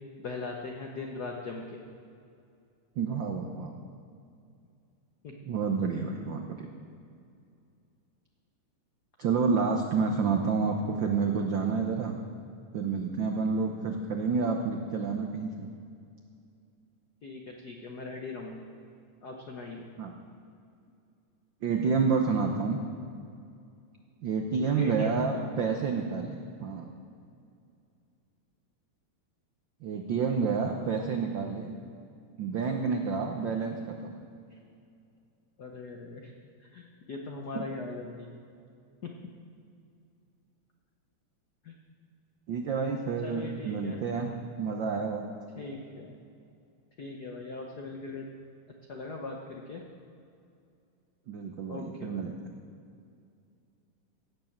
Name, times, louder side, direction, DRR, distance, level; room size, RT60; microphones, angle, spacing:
voice 1, 0.2-1.8 5.2-5.3 17.2-18.7 19.2-19.9 24.8-25.1 35.6-36.3 36.7-38.3 39.0-39.1 41.6-41.7 43.2-44.0 45.6-46.1 47.0-48.3 48.9-49.8 51.7-52.3, left 3 dB, 75° left, 1 dB, 0.9 m, -40 dB
voice 2, 3.0-3.7 5.5-6.7 9.2-12.1 12.7-15.7 20.0-20.2 21.6-22.8 24.2-26.9 29.8-31.7 32.4-34.2 37.5-37.7 42.5-45.3 51.3-52.3, right 5 dB, 80° right, 3 dB, 1.0 m, -29 dB
17.0 x 7.8 x 7.3 m, 2.5 s
omnidirectional pair, 3.3 m